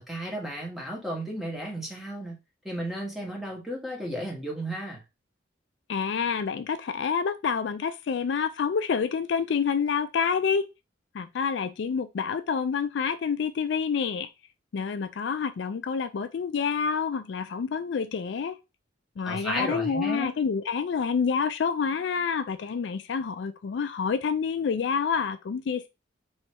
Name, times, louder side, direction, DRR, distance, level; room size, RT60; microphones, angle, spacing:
voice 1, 0.0-2.4 2.6-5.0 19.2-20.3, right 1 dB, ahead, 1.4 m, -33 dB
voice 2, 5.9-10.7 11.1-14.3 14.7-18.6 19.2-25.9, left 6 dB, 65° left, 0.3 m, -28 dB
3.1 x 3.0 x 4.5 m
head